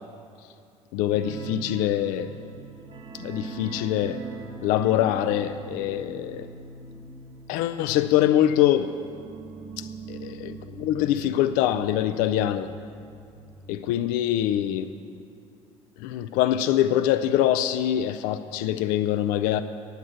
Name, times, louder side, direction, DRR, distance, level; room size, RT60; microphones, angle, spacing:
voice 1, 0.9-2.3 3.1-4.2 4.6-6.5 7.5-8.9 9.8-12.7 13.7-14.9 16.0-19.6, left 12 dB, 60° left, 10 dB, 0.4 m, -24 dB
sound 1, 1.1-14.4 14.7-14.9 15.2-15.3, right 4 dB, 40° right, 1.2 m, -42 dB
9.5 x 8.0 x 7.8 m, 2.5 s
figure-of-eight pair, 55°, 17 cm